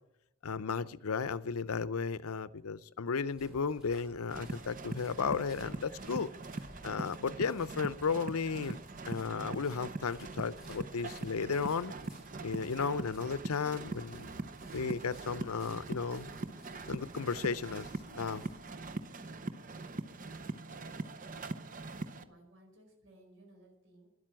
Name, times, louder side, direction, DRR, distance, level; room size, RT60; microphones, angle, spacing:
voice 1, 0.4-6.3 6.8-8.8 9.1-11.9 12.4-14.3 14.7-16.3 16.9-17.9 18.1-18.4, left 5 dB, 80° left, 0.6 m, -34 dB
sound 1, 3.3-18.9, equal, 5° right, 4.1 m, -58 dB
sound 2, 4.3-22.2, right 2 dB, 35° right, 0.7 m, -42 dB
voice 2, 20.5-24.1, equal, 60° right, 5.2 m, -60 dB
12.0 x 11.0 x 8.9 m
head